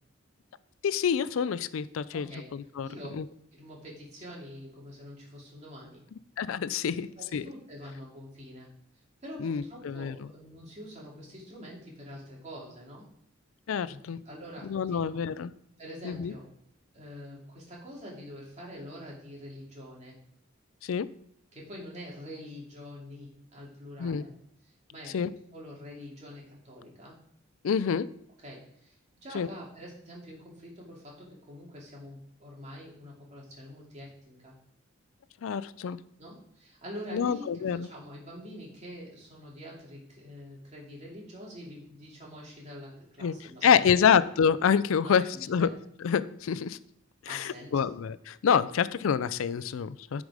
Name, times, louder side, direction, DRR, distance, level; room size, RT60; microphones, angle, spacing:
voice 1, 0.8-2.9 3.1-3.2 6.4-7.4 9.4-10.1 13.7-14.2 14.7-15.5 16.0-16.3 20.8-21.1 24.0-24.3 25.1-25.3 27.6-28.1 29.3-29.5 35.4-36.0 37.1-37.9 43.2-43.4 43.6-45.7 46.0-46.8 47.2-50.2, left 7 dB, 80° left, 17 dB, 0.4 m, -27 dB
voice 2, 2.1-2.5 2.8-3.1 3.5-6.0 7.2-8.7 9.2-13.1 13.8-14.0 14.2-15.2 15.8-16.5 16.9-20.2 21.5-24.3 24.6-25.2 25.5-27.2 28.4-34.5 36.2-43.9 45.0-45.7 47.3-47.9, equal, 35° right, -3 dB, 2.7 m, -45 dB
10.5 x 4.9 x 4.9 m, 0.74 s
head